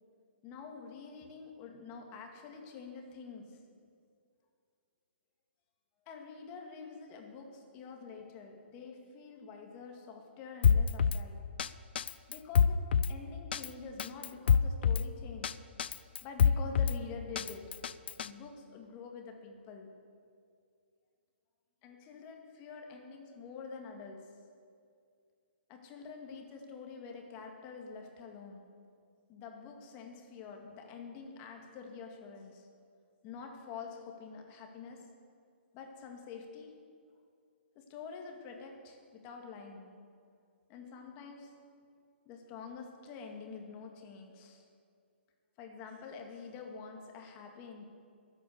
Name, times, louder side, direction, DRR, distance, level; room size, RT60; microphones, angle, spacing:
voice 1, 0.4-3.7 6.1-11.5 12.3-15.6 16.2-17.8 18.2-19.9 21.8-24.5 25.7-28.7 29.3-32.7 33.2-35.1 35.7-36.9 37.8-40.0 40.7-41.8 42.3-44.7 45.6-47.8, left 5 dB, 25° left, 3 dB, 2.1 m, -47 dB
Drum kit, 10.6-11.2 11.6-11.7 12.0-13.1 13.5-13.7 14.0-15.0 15.4-15.5 15.8-17.0 17.4-18.3, left 7 dB, 60° left, 0.6 m, -26 dB
22.0 x 8.7 x 6.9 m, 2.3 s
hypercardioid pair, 150°, 6 cm